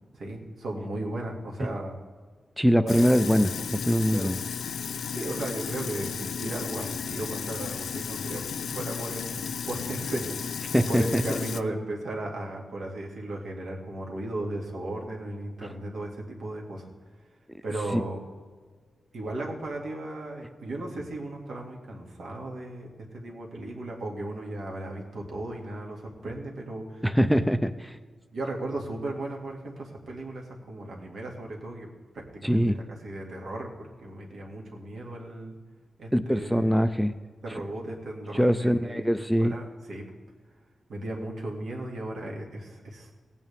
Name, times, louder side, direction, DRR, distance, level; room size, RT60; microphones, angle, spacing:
voice 1, 0.1-2.0 2.7-3.1 4.1-4.4 5.1-16.9 17.6-18.2 19.1-27.0 28.3-35.6 36.0-36.9 37.4-40.1 40.9-43.1, right 1 dB, 70° right, -1 dB, 2.2 m, -36 dB
voice 2, 2.6-4.4 10.7-11.4 17.9-18.0 27.0-27.9 32.4-32.8 36.1-37.1 38.3-39.5, equal, ahead, 10 dB, 0.3 m, -23 dB
Sink (filling or washing), 2.9-11.6, left 7 dB, 85° left, 0.4 m, -34 dB
17.0 x 9.1 x 3.5 m, 1.6 s
wide cardioid pair, 150°, 0 cm